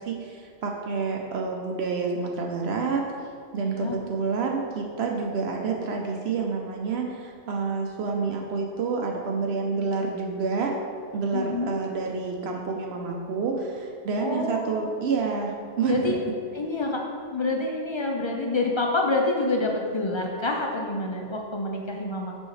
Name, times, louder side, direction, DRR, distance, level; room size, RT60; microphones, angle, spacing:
voice 1, 0.0-3.1 3.5-10.7 11.1-16.1, right 4 dB, 75° right, 1 dB, 0.8 m, -28 dB
voice 2, 3.6-4.0 11.3-11.7 14.2-14.9 15.9-16.2 16.5-22.4, left 2 dB, 45° left, 1 dB, 0.4 m, -27 dB
6.2 x 5.3 x 3.2 m, 2.1 s
omnidirectional pair, 1.1 m